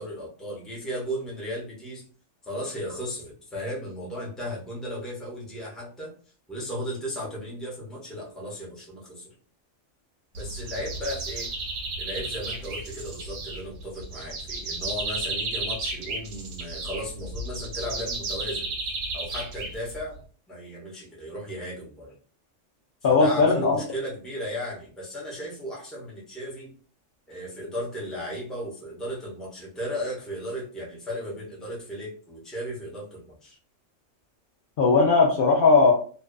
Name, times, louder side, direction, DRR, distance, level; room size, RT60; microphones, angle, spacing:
voice 1, 0.0-2.0 2.4-6.1 6.5-9.3 10.3-11.5 12.0-18.7 19.1-20.2 20.5-22.1 23.1-26.7 27.3-33.6, equal, ahead, -4 dB, 0.6 m, -35 dB
sound 1, 10.4-20.2, right 3 dB, 70° right, 1.0 m, -33 dB
voice 2, 23.0-23.8 34.8-35.9, left 4 dB, 60° left, -1 dB, 0.6 m, -18 dB
2.5 x 2.3 x 2.2 m, 0.42 s
omnidirectional pair, 1.3 m